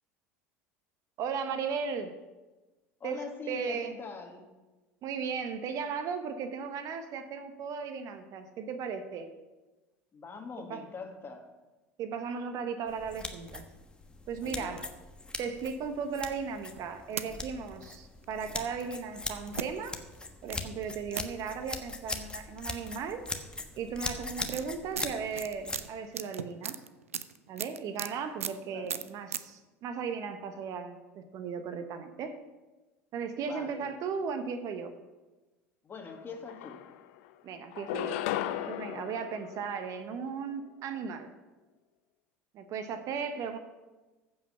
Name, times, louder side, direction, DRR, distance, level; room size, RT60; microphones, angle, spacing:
voice 1, 1.2-2.1 3.0-4.0 5.0-9.3 10.7-10.8 12.0-13.7 14.3-14.8 15.4-20.0 20.4-23.2 23.7-26.8 27.5-32.4 33.1-34.9 37.4-38.2 38.7-41.3 42.5-43.6, right 6 dB, 50° right, 9 dB, 1.1 m, -36 dB
voice 2, 3.0-4.5 10.1-11.5 14.4-14.8 28.6-28.9 33.4-33.9 35.8-36.8, left 4 dB, 30° left, 3 dB, 2.0 m, -43 dB
sound 1, 12.9-25.9, left 2 dB, 15° left, 1.3 m, -41 dB
sound 2, 16.8-17.3 18.2-18.3 19.5-19.6 20.5-20.6 21.2-21.3 22.7-22.8 23.1-23.4 24.1-28.1 28.4-28.6 28.8-29.4, right 8 dB, 85° right, 0.5 m, -37 dB
sound 3, 36.1-36.2 36.5-37.3 37.7-40.3, left 12 dB, 70° left, 0.7 m, -36 dB
15.0 x 5.7 x 5.6 m, 1.2 s
hypercardioid pair, 75°, 7 cm